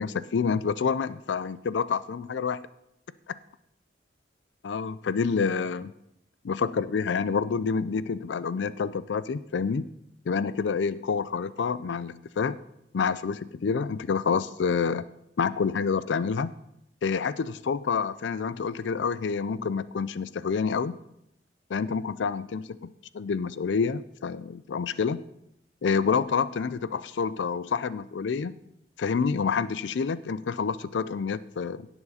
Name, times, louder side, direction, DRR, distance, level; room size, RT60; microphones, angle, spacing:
voice 1, 0.0-2.6 4.6-5.9 6.4-9.8 10.3-12.6 12.9-15.0 15.4-16.5 17.0-21.0 21.7-25.2 25.8-28.6 29.0-31.9, left 5 dB, 80° left, 16 dB, 0.4 m, -28 dB
17.0 x 7.2 x 4.2 m, 0.80 s
head